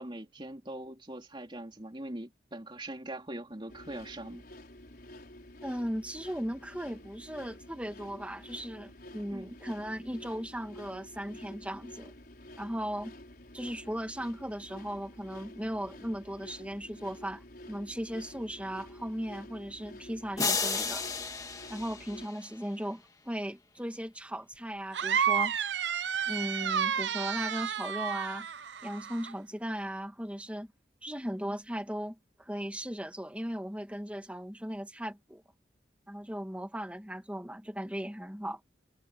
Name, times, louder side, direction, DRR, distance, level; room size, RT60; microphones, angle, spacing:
voice 1, 0.0-4.4 9.3-9.6, right 1 dB, 25° right, 3.2 m, -42 dB
sound 1, 3.7-22.3, left 1 dB, 55° left, 5.8 m, -50 dB
voice 2, 5.6-12.1 12.6-13.1 13.5-21.1 21.7-25.6 26.3-28.5 28.8-30.7 31.0-35.4 36.1-38.6, equal, 5° right, 2.1 m, -37 dB
sound 2, 20.4-22.7, left 4 dB, 20° left, 1.9 m, -33 dB
sound 3, 24.9-29.3, right 8 dB, 75° right, 0.7 m, -31 dB
head